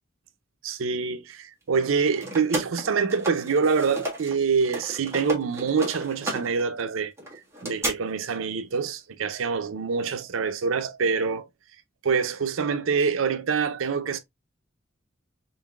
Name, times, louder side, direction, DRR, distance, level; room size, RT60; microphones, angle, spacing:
voice 1, 0.6-7.1 7.6-11.5 12.0-14.2, right 5 dB, 85° right, 0.5 m, -25 dB
sound 1, 1.7-4.3 4.6-7.9, right 1 dB, 15° right, 1.4 m, -33 dB
4.0 x 3.9 x 2.3 m
head